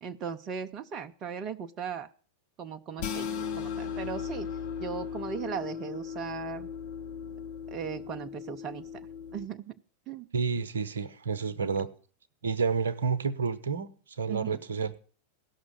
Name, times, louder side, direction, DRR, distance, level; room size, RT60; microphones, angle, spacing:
voice 1, 0.0-2.1 2.6-6.7 7.7-9.1 9.3-9.7 10.1-10.3 14.3-14.6, right 7 dB, 35° right, 0.5 m, -38 dB
sound 1, 3.0-9.5, left 7 dB, 50° left, 1.3 m, -37 dB
voice 2, 10.3-11.9 12.4-13.9 14.2-15.0, right 5 dB, 70° right, 0.8 m, -29 dB
16.5 x 6.1 x 8.3 m
figure-of-eight pair, 90°, 0 cm